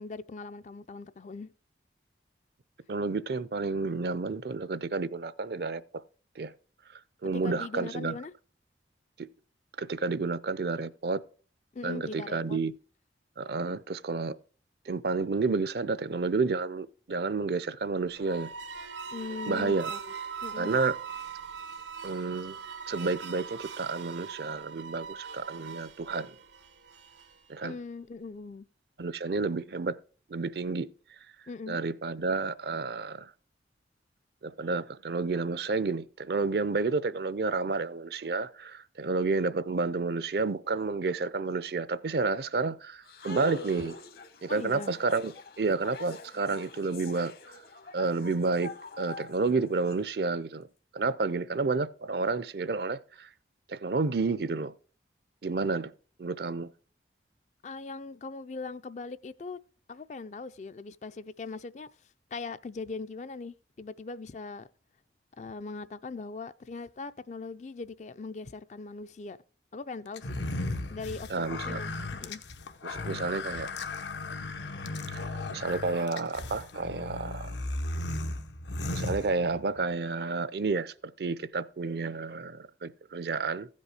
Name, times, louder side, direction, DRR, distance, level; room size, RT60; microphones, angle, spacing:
voice 1, 0.0-1.5 7.3-8.3 11.7-12.6 19.1-20.0 20.4-20.8 27.6-28.7 31.5-31.8 44.5-44.9 57.6-59.6 59.9-61.9 62.3-64.7 65.4-69.4 69.7-70.4 70.9-71.9 72.2-72.4, left 4 dB, 40° left, 0.4 m, -40 dB
voice 2, 2.9-5.8 6.4-6.5 7.2-8.1 9.2-9.3 9.8-11.2 11.8-12.7 13.4-14.3 14.9-18.5 19.5-19.9 20.6-20.9 22.0-22.6 22.9-26.4 27.5-27.7 29.0-30.0 30.3-30.9 31.7-33.3 34.4-44.0 44.4-45.3 45.6-47.3 47.9-48.7 49.0-50.7 50.9-53.3 53.7-54.7 55.4-55.9 56.2-56.7 71.3-71.8 72.8-73.7 75.1-77.5 78.9-83.7, right 3 dB, 60° right, 0.5 m, -30 dB
sound 1, 18.1-27.5, right 6 dB, 90° right, 0.9 m, -41 dB
sound 2, 43.0-49.9, left 2 dB, 55° left, 1.0 m, -44 dB
sound 3, 70.2-79.8, left 2 dB, 80° left, 0.9 m, -36 dB
15.5 x 5.3 x 4.8 m
head